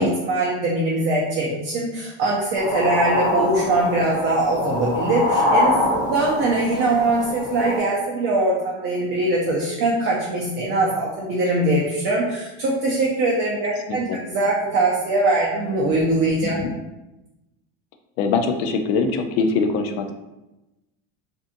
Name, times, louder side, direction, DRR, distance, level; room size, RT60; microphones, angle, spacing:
voice 1, 0.0-16.6, right 2 dB, 35° right, -4 dB, 0.5 m, -22 dB
sound 1, 2.6-7.8, left 1 dB, 40° left, 0.8 m, -24 dB
voice 2, 13.9-14.2 16.4-16.7 18.2-20.1, left 4 dB, 55° left, 6 dB, 0.5 m, -22 dB
2.6 x 2.4 x 2.5 m, 0.99 s
supercardioid pair, 130°, 37 cm